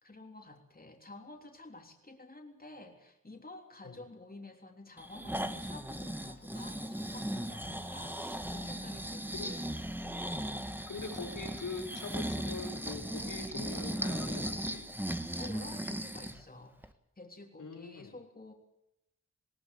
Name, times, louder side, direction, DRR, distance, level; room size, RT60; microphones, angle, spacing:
voice 1, 0.0-10.9 15.4-18.5, left 2 dB, 30° left, 2 dB, 3.4 m, -51 dB
Breathing, 5.0-16.4 16.8-16.9, right 1 dB, 5° right, 1.6 m, -37 dB
voice 2, 10.9-14.9 17.6-18.1, left 4 dB, 80° left, 2 dB, 4.9 m, -43 dB
19.5 x 18.5 x 8.5 m, 0.83 s
wide cardioid pair, 65°, 31 cm